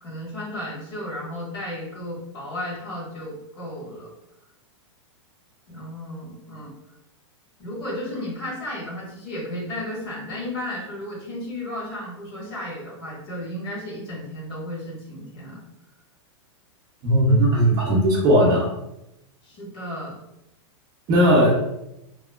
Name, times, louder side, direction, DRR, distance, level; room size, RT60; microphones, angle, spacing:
voice 1, 0.0-4.1 5.7-6.7 7.6-15.6 19.4-20.1, left 1 dB, 55° left, -5 dB, 1.4 m, -34 dB
voice 2, 17.0-18.7 21.1-21.6, right 1 dB, 25° right, -3 dB, 0.6 m, -17 dB
2.9 x 2.2 x 2.3 m, 0.86 s
supercardioid pair, 160°, 16 cm